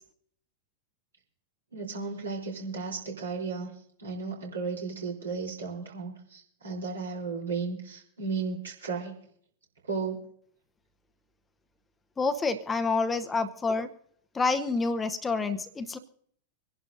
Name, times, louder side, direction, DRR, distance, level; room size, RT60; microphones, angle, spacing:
voice 1, 1.7-3.7 4.0-9.2 9.8-10.2, right 4 dB, 75° right, -1 dB, 3.3 m, -34 dB
voice 2, 12.2-13.9 14.3-16.0, left 3 dB, 15° left, 10 dB, 0.8 m, -28 dB
26.0 x 11.0 x 2.6 m, 0.63 s
figure-of-eight pair, 90°, 0 cm